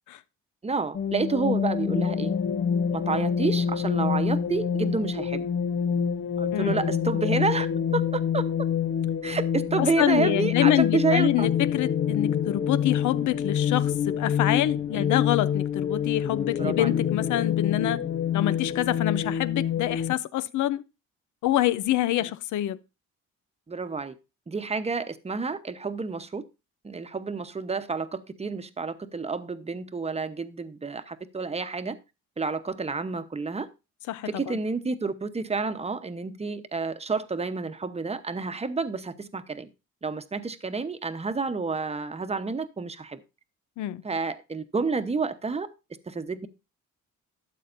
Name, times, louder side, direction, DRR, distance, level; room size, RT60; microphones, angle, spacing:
voice 1, 0.6-2.3 2.9-5.5 6.4-7.7 7.9-8.4 9.2-11.5 14.9-15.1 16.6-16.9 19.1-19.2 23.7-24.1 24.5-26.4 26.8-32.0 32.4-33.7 34.3-39.7 40.0-43.2 44.0-45.7 46.1-46.5, right 4 dB, 20° right, 0.9 m, -29 dB
sound 1, 0.9-20.1, left 8 dB, 40° left, 0.6 m, -26 dB
voice 2, 6.5-6.9 9.8-18.0 18.3-20.8 21.4-22.8 34.1-34.6 43.8-44.0, left 13 dB, 80° left, 0.6 m, -26 dB
12.5 x 7.9 x 2.6 m
cardioid pair, 90°, 30 cm